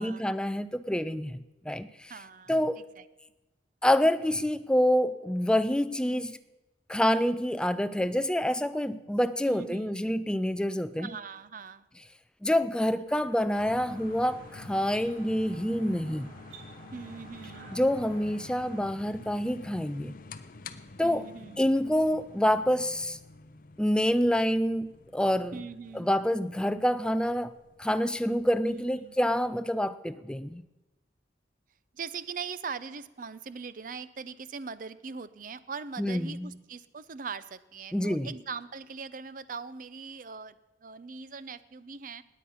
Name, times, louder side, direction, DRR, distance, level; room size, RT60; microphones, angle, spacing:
voice 1, 0.0-2.1 2.5-2.8 3.8-6.4 6.9-11.1 12.4-16.3 17.7-20.1 21.0-21.3 21.6-23.2 23.8-25.6 25.9-27.5 27.8-30.6 36.0-36.5 37.9-38.3, equal, 5° left, 11 dB, 0.4 m, -27 dB
voice 2, 2.1-3.0 6.0-6.3 9.5-10.0 11.0-11.9 16.9-17.7 21.0-21.7 25.5-26.1 28.7-29.2 31.9-42.2, right 5 dB, 50° right, 16 dB, 0.5 m, -41 dB
sound 1, 13.1-18.8, right 2 dB, 75° right, 5.1 m, -52 dB
sound 2, 13.6-29.6, left 3 dB, 50° left, 0.7 m, -49 dB
19.5 x 8.5 x 5.6 m, 1.0 s
head